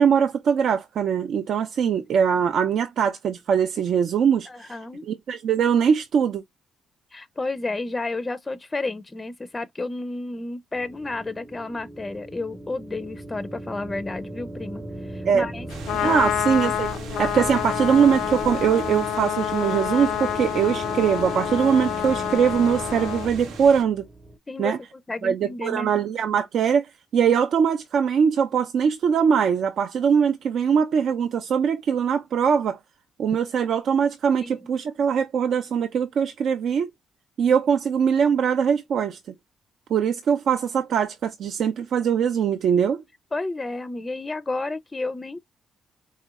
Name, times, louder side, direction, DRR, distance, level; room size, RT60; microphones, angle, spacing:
voice 1, 0.0-4.8 5.0-6.4 15.2-15.5 16.0-16.9 17.2-24.1 24.6-24.8 25.2-32.8 33.2-36.9 37.4-39.2 39.9-43.0, right 7 dB, 65° right, 0.5 m, -22 dB
voice 2, 4.5-5.0 7.1-15.7 16.0-16.3 24.5-24.7 25.1-26.0 34.4-34.6 43.3-45.4, left 2 dB, 20° left, 0.4 m, -31 dB
sound 1, 10.7-24.4, right 1 dB, 20° right, 0.9 m, -37 dB
Trumpet, 15.7-23.3, left 11 dB, 85° left, 0.3 m, -28 dB
sound 2, 15.7-23.8, right 5 dB, 85° right, 0.9 m, -41 dB
4.2 x 2.7 x 2.4 m
cardioid pair, 90°, 0 cm